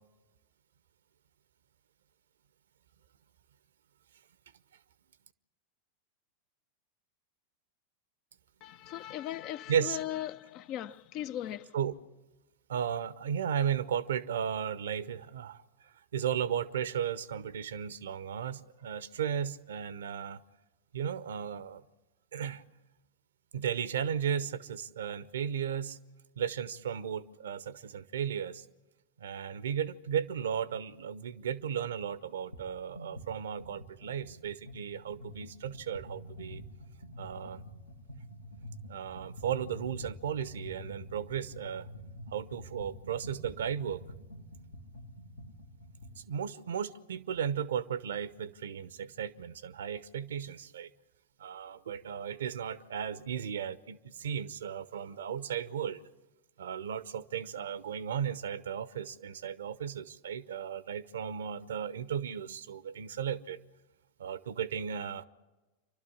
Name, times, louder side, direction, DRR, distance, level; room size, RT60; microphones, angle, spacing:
voice 1, 8.6-11.7, left 12 dB, 40° left, 0.6 m, -38 dB
voice 2, 12.7-15.6 16.1-20.4 20.9-21.8 22.3-22.6 23.5-26.0 26.4-28.6 29.2-36.6 37.2-37.6 38.9-41.9 42.3-44.0 46.3-50.9 51.4-56.0 56.6-63.6 64.2-65.2, right 8 dB, 65° right, 0.8 m, -35 dB
sound 1, 32.5-32.7 32.9-46.2, equal, 70° left, 1.7 m, -47 dB
27.5 x 12.5 x 9.8 m
figure-of-eight pair, 90°, 0 cm